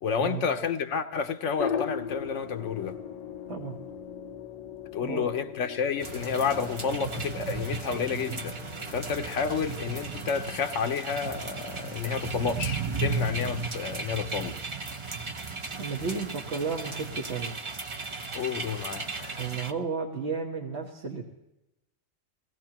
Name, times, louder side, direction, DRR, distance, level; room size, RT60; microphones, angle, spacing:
voice 1, 0.0-3.0 4.9-8.6 8.8-14.6 18.3-19.4, left 6 dB, 70° left, 1.0 m, -30 dB
sound 1, 1.6-10.7, left 7 dB, 45° left, 0.6 m, -39 dB
sound 2, 6.0-19.7, right 4 dB, 30° right, 0.7 m, -35 dB
voice 2, 15.8-17.6 19.3-21.2, right 5 dB, 60° right, 1.4 m, -33 dB
24.0 x 18.0 x 2.9 m
omnidirectional pair, 1.3 m